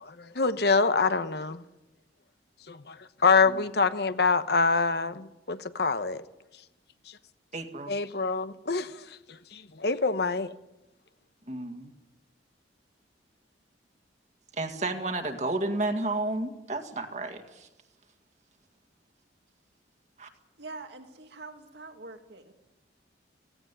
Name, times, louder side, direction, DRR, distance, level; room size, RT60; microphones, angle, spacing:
voice 1, 0.0-1.6 2.7-3.0 3.2-6.2 7.9-9.0 9.5-10.5, left 4 dB, 60° left, 1.0 m, -25 dB
voice 2, 7.5-8.0 11.5-11.9 14.6-17.7 20.2-20.3, right 2 dB, 40° right, 2.0 m, -32 dB
voice 3, 20.6-22.5, right 3 dB, 70° right, 2.3 m, -44 dB
17.0 x 17.0 x 9.8 m
head